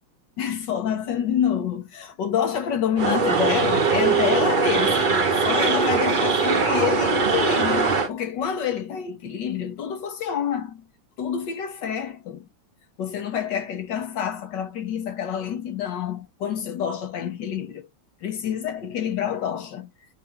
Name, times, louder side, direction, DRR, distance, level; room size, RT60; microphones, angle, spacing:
voice 1, 0.4-10.8 11.2-12.5 13.0-17.9 18.2-19.9, left 8 dB, 70° left, 1.7 m, -27 dB
sound 1, 3.0-8.1, right 4 dB, 35° right, 0.8 m, -21 dB
9.9 x 3.4 x 3.6 m
omnidirectional pair, 2.1 m